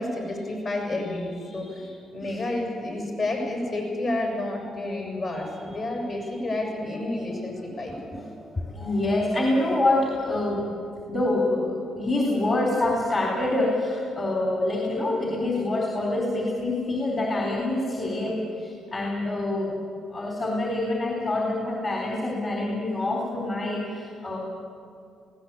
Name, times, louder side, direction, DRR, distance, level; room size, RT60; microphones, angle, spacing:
voice 1, 0.0-8.2, left 2 dB, 55° left, 1 dB, 7.2 m, -30 dB
voice 2, 7.9-19.8 20.1-24.4, left 2 dB, 40° left, -1 dB, 3.9 m, -26 dB
20.0 x 16.5 x 8.5 m, 2.4 s
cardioid pair, 90°, 0 cm